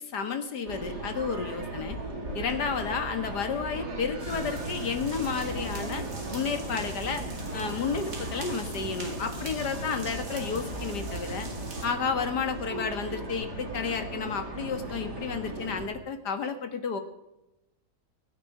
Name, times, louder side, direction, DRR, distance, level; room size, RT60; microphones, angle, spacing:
voice 1, 0.0-2.0 2.3-6.0 6.3-7.2 7.5-11.5 11.8-17.0, left 5 dB, 85° left, 7 dB, 2.2 m, -31 dB
sound 1, 0.7-15.9, right 2 dB, 85° right, 4.4 m, -37 dB
sound 2, 4.2-11.9, right 1 dB, 55° right, 3.2 m, -40 dB
22.0 x 9.7 x 5.0 m, 0.93 s
omnidirectional pair, 1.7 m